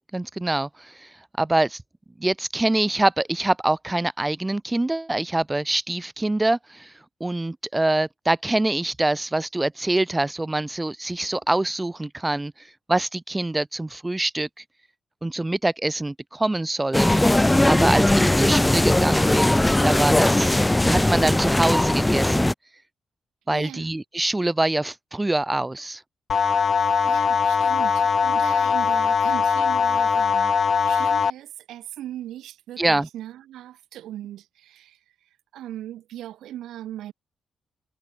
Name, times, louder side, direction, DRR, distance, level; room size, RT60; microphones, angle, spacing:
voice 1, 0.1-1.1 1.4-1.8 2.2-6.9 7.2-12.5 12.9-14.5 15.2-17.2 17.7-20.6 20.8-22.5 23.5-26.0 32.8-33.1, right 2 dB, 15° right, 3.5 m, -25 dB
sound 1, 16.9-22.5, left 1 dB, 10° left, 1.2 m, -19 dB
voice 2, 23.5-23.9 27.0-37.1, right 12 dB, 85° right, 7.4 m, -39 dB
sound 2, 26.3-31.3, left 6 dB, 55° left, 0.7 m, -21 dB
cardioid pair, 70°, 0 cm